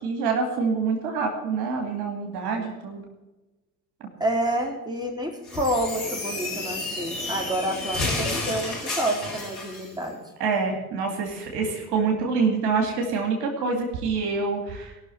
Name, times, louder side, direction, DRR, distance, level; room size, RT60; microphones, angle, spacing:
voice 1, 0.0-3.0 10.4-14.9, right 4 dB, 60° right, 1 dB, 2.5 m, -26 dB
voice 2, 4.2-10.2, right 1 dB, 10° right, 0 dB, 4.2 m, -28 dB
sound 1, 5.5-9.9, left 2 dB, 85° left, 3.0 m, -31 dB
19.0 x 6.4 x 7.8 m, 1.1 s
figure-of-eight pair, 50°, 42 cm